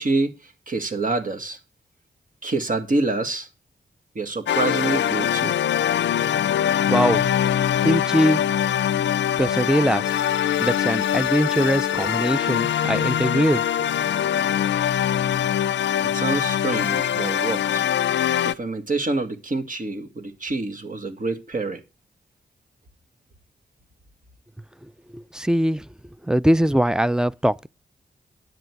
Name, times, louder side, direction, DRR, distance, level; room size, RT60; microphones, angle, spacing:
voice 1, 0.0-1.6 2.4-3.5 4.2-5.6 16.0-17.8 18.4-21.8, right 3 dB, 45° right, 2.0 m, -26 dB
sound 1, 4.5-18.5, left 10 dB, 85° left, 0.4 m, -23 dB
voice 2, 6.9-7.3 7.8-8.4 9.4-10.2 10.6-14.3 25.1-25.9 26.2-27.7, equal, 5° right, 0.4 m, -22 dB
10.0 x 7.7 x 4.7 m
cardioid pair, 60°, 18 cm